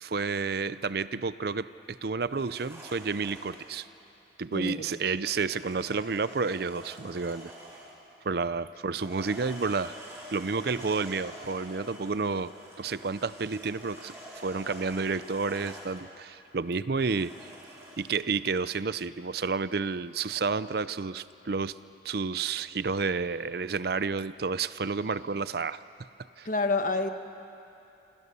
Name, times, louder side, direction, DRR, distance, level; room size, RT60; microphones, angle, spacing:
voice 1, 0.0-3.9 4.4-7.5 8.2-10.0 10.3-12.5 12.8-17.3 18.0-21.8 22.0-25.8 26.4-26.5, right 4 dB, 55° right, 15 dB, 0.5 m, -30 dB
sound 1, 2.3-3.8 5.5-8.1 8.9-16.1 16.9-18.2, equal, 15° right, 4.8 m, -47 dB
voice 2, 4.5-4.8 26.4-27.1, left 3 dB, 45° left, 7 dB, 1.3 m, -28 dB
28.5 x 27.0 x 6.9 m, 2.8 s
head